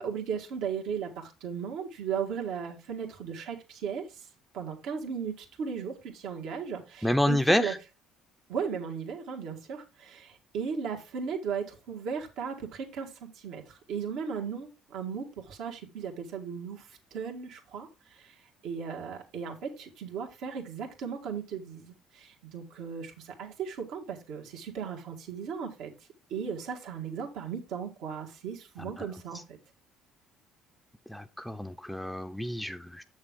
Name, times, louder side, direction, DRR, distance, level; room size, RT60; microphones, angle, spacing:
voice 1, 0.0-4.2 4.5-7.7 8.5-18.4 18.6-25.9 26.3-29.6, right 6 dB, 75° right, 1.8 m, -36 dB
voice 2, 7.0-7.8 28.8-29.1 29.3-29.4 31.1-33.0, left 1 dB, 5° left, 0.6 m, -28 dB
7.6 x 6.4 x 3.6 m
supercardioid pair, 75°, 0 cm